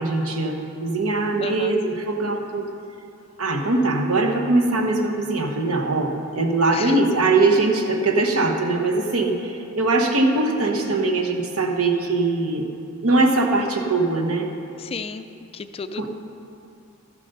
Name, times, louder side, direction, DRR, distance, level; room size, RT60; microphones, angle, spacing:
voice 1, 0.0-2.7 3.4-12.6 13.0-14.5 16.0-16.1, right 2 dB, 75° right, 3 dB, 1.2 m, -21 dB
voice 2, 1.4-1.8 6.7-7.0 14.8-15.3 15.5-16.1, left 5 dB, 25° left, 10 dB, 0.3 m, -33 dB
13.5 x 7.3 x 5.5 m, 2.6 s
head